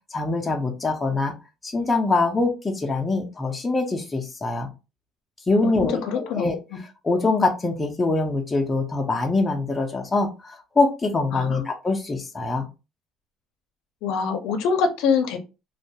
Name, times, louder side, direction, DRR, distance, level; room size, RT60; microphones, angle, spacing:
voice 1, 0.1-1.3 1.6-4.7 5.5-6.6 7.0-12.7, left 3 dB, 15° left, 2 dB, 0.4 m, -24 dB
voice 2, 5.6-6.5 11.3-11.6 14.0-15.4, left 5 dB, 75° left, 6 dB, 0.5 m, -24 dB
2.3 x 2.2 x 2.7 m, 0.29 s
cardioid pair, 160°, 0 cm